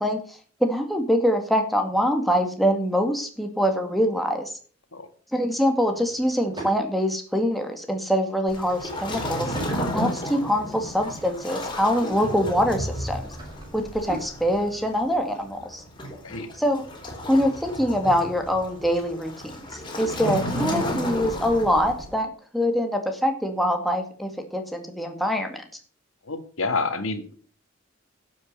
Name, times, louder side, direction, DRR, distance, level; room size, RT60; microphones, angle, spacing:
voice 1, 0.0-4.5 5.3-9.6 9.9-13.3 13.7-15.8 16.6-16.8 17.3-19.3 19.7-25.6, equal, ahead, 3 dB, 2.1 m, -24 dB
Drawer open or close / Wood, 5.8-6.8 8.5-9.8 10.4-11.5 12.8-14.4, right 1 dB, 20° right, 6.0 m, -41 dB
Waves surf, 8.5-22.1, equal, 25° left, 4.2 m, -33 dB
voice 2, 26.3-27.4, left 3 dB, 85° left, 9 dB, 2.0 m, -28 dB
11.5 x 8.5 x 6.7 m, 0.42 s
head